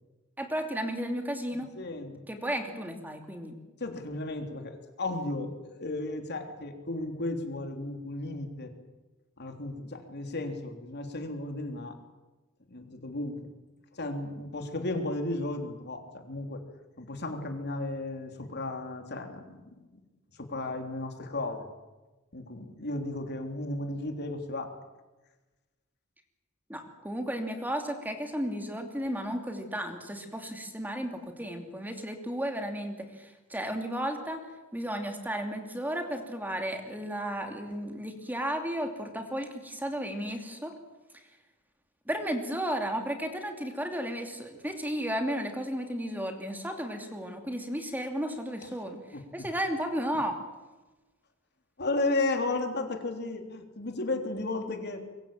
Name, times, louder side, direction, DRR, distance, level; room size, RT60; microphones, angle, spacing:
voice 1, 0.4-1.7 2.3-3.6 26.7-34.4 34.7-40.7 42.1-49.0 49.3-50.4, equal, 10° right, 4 dB, 2.8 m, -33 dB
voice 2, 1.8-2.2 3.8-8.7 9.4-12.0 12.7-13.5 13.9-16.6 17.0-20.0 20.4-21.7 22.3-24.7 49.1-49.5 51.8-55.0, left 2 dB, 55° left, 4 dB, 3.5 m, -34 dB
25.0 x 23.5 x 7.6 m, 1.1 s
head